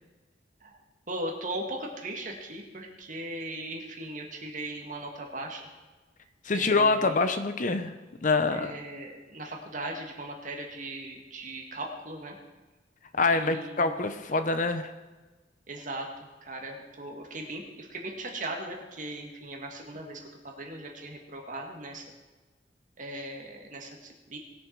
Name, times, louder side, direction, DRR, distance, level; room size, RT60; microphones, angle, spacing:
voice 1, 0.6-5.6 6.5-7.2 8.5-12.4 13.3-14.0 15.7-16.1 16.4-22.0 23.0-24.4, right 1 dB, 45° right, 1 dB, 2.2 m, -38 dB
voice 2, 6.4-7.9 8.2-8.7 13.1-14.9, left 3 dB, 45° left, 9 dB, 0.9 m, -25 dB
20.5 x 7.2 x 4.7 m, 1.2 s
head